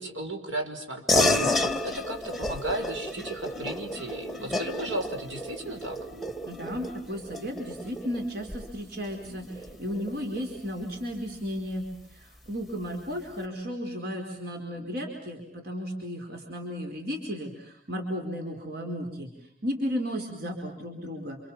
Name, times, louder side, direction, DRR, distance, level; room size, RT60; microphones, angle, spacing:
voice 1, 0.0-6.0, right 1 dB, 70° right, 4 dB, 5.8 m, -34 dB
sound 1, 1.1-11.0, left 2 dB, ahead, 2.0 m, -31 dB
voice 2, 6.5-19.3 19.6-21.4, equal, 55° right, 3 dB, 4.7 m, -34 dB
28.5 x 28.0 x 7.4 m, 0.65 s
head